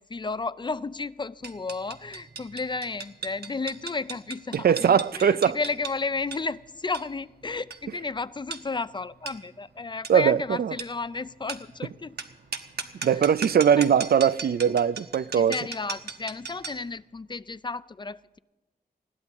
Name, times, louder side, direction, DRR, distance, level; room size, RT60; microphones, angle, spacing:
voice 1, 0.0-12.2 13.0-13.3 13.8-13.9 15.3-18.4, left 3 dB, 30° left, 0.4 m, -33 dB
sound 1, 1.4-16.9, right 5 dB, 90° right, 1.2 m, -39 dB
voice 2, 4.5-5.6 10.1-10.7 13.0-15.6, right 8 dB, 75° right, 0.4 m, -21 dB
20.5 x 15.5 x 3.6 m
wide cardioid pair, 100°, 16 cm